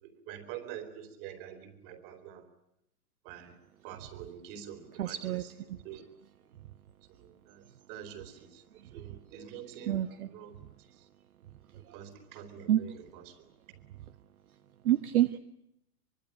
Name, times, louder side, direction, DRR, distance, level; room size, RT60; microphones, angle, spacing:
voice 1, 0.0-2.4 3.2-3.5 3.8-6.0 7.1-7.6 7.9-8.6 8.9-10.0 10.2-10.6 11.9-13.3, right 9 dB, 35° right, 9 dB, 3.9 m, -46 dB
voice 2, 5.0-5.4 9.4-9.5 9.9-10.3 12.7-12.8 14.8-15.4, right 12 dB, 60° right, 11 dB, 1.3 m, -27 dB
24.5 x 23.0 x 9.0 m, 0.79 s
hypercardioid pair, 155°, 48 cm